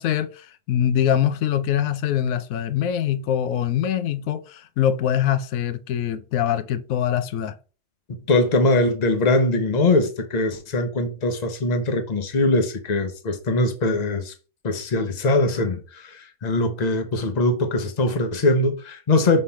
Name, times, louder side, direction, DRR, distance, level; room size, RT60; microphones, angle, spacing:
voice 1, 0.0-7.6, left 10 dB, 90° left, 1.0 m, -23 dB
voice 2, 8.3-14.3 14.6-19.4, left 2 dB, 35° left, 0.9 m, -22 dB
5.5 x 3.3 x 5.6 m
omnidirectional pair, 1.4 m